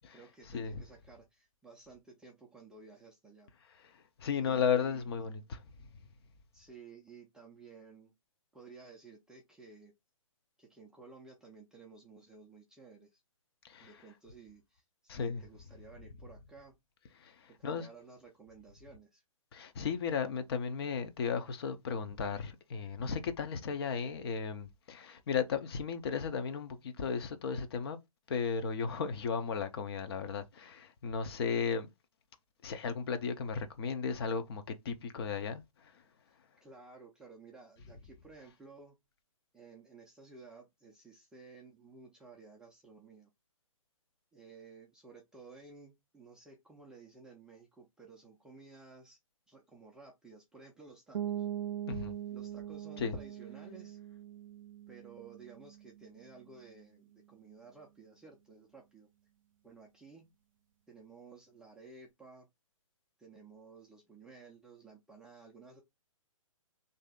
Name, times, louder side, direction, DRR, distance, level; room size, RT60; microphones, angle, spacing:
voice 1, 0.1-3.5 4.3-5.1 6.5-8.1 8.5-9.9 10.6-13.2 13.8-16.7 17.6-19.2 36.3-36.4 36.6-39.0 39.5-43.3 44.3-49.2 49.5-51.5 52.3-54.0 54.9-59.1 59.6-60.3 60.9-62.5 63.2-65.8, right 4 dB, 5° right, 0.4 m, -55 dB
voice 2, 4.2-5.6 13.6-13.9 15.1-15.4 17.2-17.9 19.5-28.0 28.3-31.9 32.6-35.9 51.9-52.2 53.0-53.2, left 6 dB, 45° left, 0.7 m, -35 dB
sound 1, 51.1-56.7, right 10 dB, 70° right, 0.5 m, -42 dB
3.1 x 2.7 x 3.6 m
hypercardioid pair, 140°, 18 cm